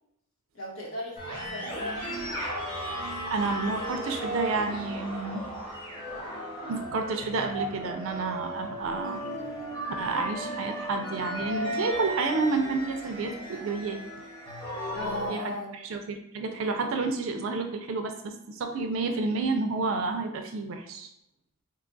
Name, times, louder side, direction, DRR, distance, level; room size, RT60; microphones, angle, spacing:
voice 1, 0.5-2.2 14.9-15.7, left 1 dB, 80° left, -2 dB, 0.9 m, -36 dB
sound 1, 1.2-15.3, equal, 20° left, 1.0 m, -36 dB
voice 2, 3.3-5.4 6.7-9.2 10.0-14.0 15.3-15.5 15.8-21.1, right 3 dB, 75° right, 4 dB, 0.4 m, -30 dB
2.8 x 2.3 x 3.8 m, 0.79 s
head